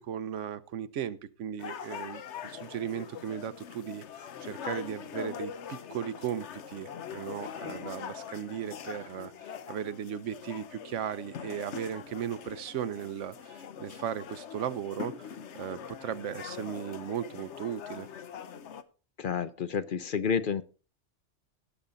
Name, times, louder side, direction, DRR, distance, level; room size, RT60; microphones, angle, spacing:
voice 1, 0.0-18.1, right 9 dB, 90° right, 15 dB, 1.1 m, -37 dB
sound 1, 1.6-18.8, left 8 dB, 75° left, 1.1 m, -43 dB
voice 2, 19.2-20.6, left 6 dB, 55° left, 14 dB, 0.7 m, -30 dB
17.0 x 7.0 x 3.8 m, 0.35 s
omnidirectional pair, 1.2 m